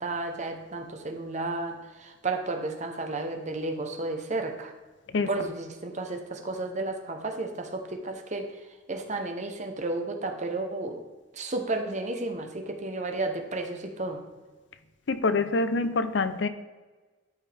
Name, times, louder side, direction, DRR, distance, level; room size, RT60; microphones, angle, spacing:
voice 1, 0.0-4.7 5.3-8.5 8.9-11.0 11.3-14.2, right 2 dB, 40° right, 5 dB, 1.0 m, -32 dB
voice 2, 15.1-16.5, left 3 dB, 65° left, 11 dB, 0.6 m, -25 dB
13.0 x 5.4 x 3.5 m, 1.3 s
head